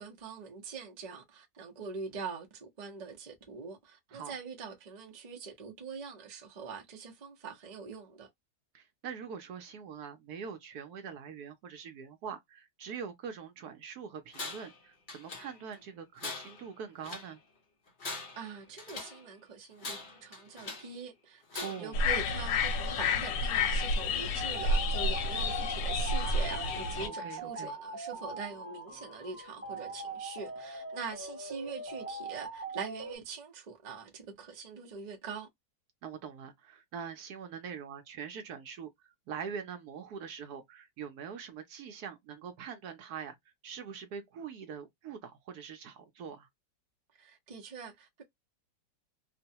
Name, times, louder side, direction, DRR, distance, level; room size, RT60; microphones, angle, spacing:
voice 1, 0.0-8.3 18.4-35.5 47.1-48.2, right 5 dB, 40° right, 0.6 m, -43 dB
voice 2, 8.7-17.4 21.6-22.0 27.0-27.7 36.0-43.4 43.6-46.5, right 7 dB, 70° right, 1.1 m, -43 dB
Tools, 14.3-14.8 15.1-15.8 16.2-17.3 17.9-19.2 19.8-21.0 21.5-22.0, left 3 dB, 40° left, 0.7 m, -42 dB
sound 1, 21.9-27.1, left 3 dB, 75° left, 1.2 m, -30 dB
sound 2, 24.5-33.2, right 2 dB, 10° right, 0.9 m, -42 dB
3.0 x 2.1 x 2.7 m
omnidirectional pair, 1.9 m